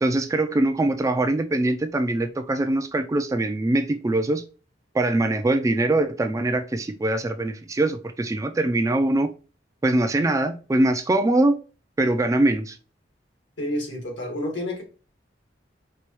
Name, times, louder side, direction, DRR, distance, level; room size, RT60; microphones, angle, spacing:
voice 1, 0.0-4.4 4.9-9.3 9.8-11.6 12.0-12.8, right 2 dB, 20° right, 0.3 m, -22 dB
voice 2, 13.6-14.8, left 1 dB, 75° left, 1.5 m, -29 dB
4.3 x 2.2 x 3.0 m
head